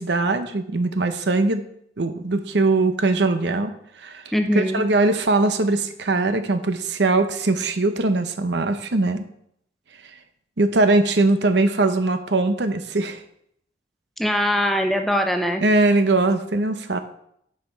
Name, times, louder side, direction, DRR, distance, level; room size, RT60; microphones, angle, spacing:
voice 1, 0.0-1.6 2.0-3.7 4.0-4.2 4.5-9.2 10.6-13.2 15.6-17.0, right 2 dB, 70° right, 9 dB, 0.8 m, -21 dB
voice 2, 4.3-4.8 14.2-15.6 16.9-17.0, equal, ahead, 4 dB, 0.7 m, -22 dB
10.5 x 5.6 x 4.5 m, 0.72 s
head